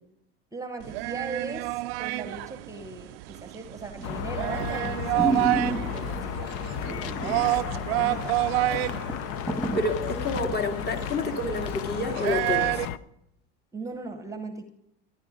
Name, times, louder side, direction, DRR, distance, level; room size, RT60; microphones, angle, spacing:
voice 1, 0.5-7.1 7.7-8.4 11.0-11.4 13.7-14.7, right 3 dB, 10° right, 7 dB, 1.0 m, -39 dB
sound 1, 0.8-12.8, right 19 dB, 85° right, 0.5 m, -29 dB
sound 2, 4.0-13.0, left 9 dB, 50° left, 0.6 m, -34 dB
sound 3, 4.0-4.3 4.8-4.9 5.1-6.2 6.8-7.5 7.8-7.9 8.4-8.5 8.7-10.6 11.1-11.2, right 2 dB, 10° left, 1.6 m, -30 dB
voice 2, 9.7-12.9, left 2 dB, 35° left, 4 dB, 2.1 m, -29 dB
13.5 x 10.5 x 5.1 m, 0.80 s
supercardioid pair, 130°, 30 cm